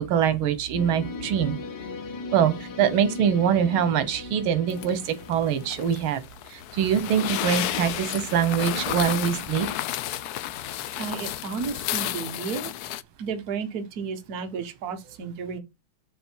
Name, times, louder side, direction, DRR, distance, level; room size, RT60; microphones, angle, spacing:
voice 1, 0.0-1.5 2.3-6.2 6.5-9.7, right 8 dB, 85° right, 1.7 m, -24 dB
sound 1, 0.8-5.9, left 4 dB, 60° left, 1.5 m, -38 dB
sound 2, 4.7-13.0, left 13 dB, 85° left, 0.8 m, -32 dB
voice 2, 11.0-12.7 13.2-15.6, right 5 dB, 55° right, 1.4 m, -33 dB
6.9 x 4.3 x 4.6 m
omnidirectional pair, 2.2 m